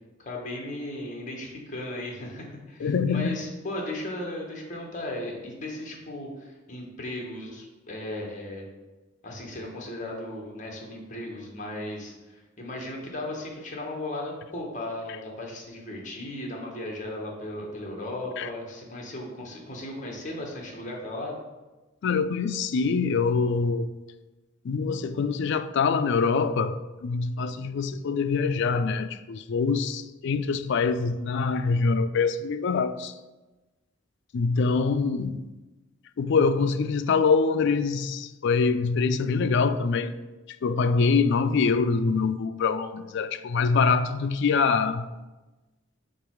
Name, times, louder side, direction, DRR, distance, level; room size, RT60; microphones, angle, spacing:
voice 1, 0.2-8.6 9.2-21.3, left 1 dB, 40° left, 1.3 m, -36 dB
voice 2, 2.8-3.4 18.4-18.5 22.0-23.9 24.6-33.1 34.3-35.5 36.2-40.1 40.6-45.1, left 4 dB, 60° left, 0.3 m, -24 dB
5.2 x 4.6 x 4.6 m
head